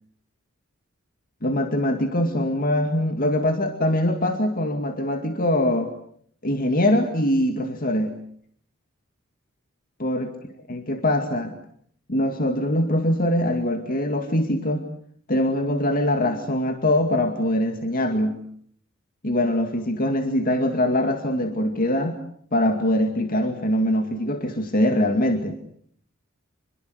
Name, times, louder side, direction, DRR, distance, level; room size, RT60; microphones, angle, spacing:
voice 1, 1.4-5.9 6.4-8.2 10.0-10.3 10.7-11.5 12.1-14.8 15.3-18.4 19.2-22.2 22.5-25.6, left 1 dB, 45° left, 6 dB, 2.3 m, -23 dB
27.5 x 22.0 x 8.1 m, 0.63 s
head